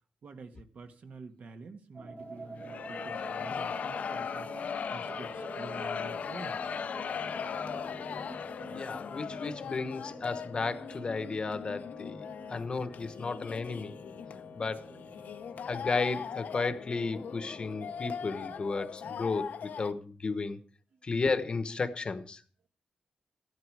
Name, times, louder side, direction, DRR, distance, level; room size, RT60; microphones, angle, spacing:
voice 1, 0.2-4.5 4.9-6.6 12.4-12.5, right 3 dB, 65° right, 1.7 m, -48 dB
sound 1, 1.9-18.6, right 2 dB, 40° right, 3.6 m, -48 dB
sound 2, 2.6-9.8, left 7 dB, 60° left, 0.6 m, -37 dB
sound 3, 7.3-19.9, left 7 dB, 90° left, 0.8 m, -42 dB
voice 2, 8.7-13.9 14.5-14.9 15.7-20.6 21.0-22.4, left 4 dB, 35° left, 1.0 m, -33 dB
15.0 x 12.0 x 4.7 m
wide cardioid pair, 170°, 3 cm